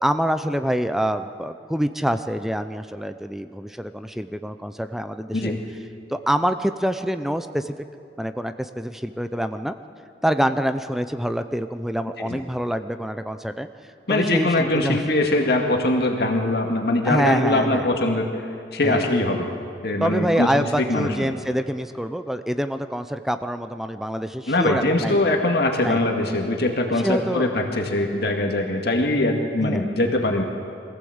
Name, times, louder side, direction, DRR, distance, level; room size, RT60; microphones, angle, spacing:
voice 1, 0.0-5.5 6.1-7.7 8.2-9.8 10.2-15.0 17.0-17.9 18.8-19.1 20.0-25.2 25.8-26.0 26.9-27.6 29.6-29.8, equal, ahead, 9 dB, 0.5 m, -26 dB
voice 2, 14.1-19.5 19.8-20.5 20.7-21.3 24.5-30.4, left 2 dB, 65° left, 2 dB, 2.0 m, -22 dB
23.0 x 15.5 x 8.0 m, 2.5 s
head